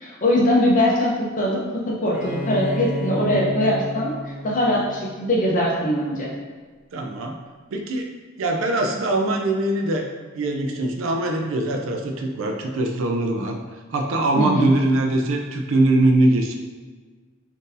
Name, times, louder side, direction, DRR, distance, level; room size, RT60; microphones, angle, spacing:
voice 1, 0.0-1.6 1.8-4.1 4.4-6.3 14.4-14.7, left 1 dB, 40° left, -3 dB, 0.7 m, -21 dB
Bowed string instrument, 2.1-5.7, left 1 dB, 5° right, 0.5 m, -31 dB
voice 2, 6.9-7.4 7.7-8.1 8.4-10.1 10.3-13.6 13.9-16.5, right 2 dB, 70° right, 3 dB, 0.4 m, -22 dB
3.7 x 2.6 x 2.6 m, 1.4 s
head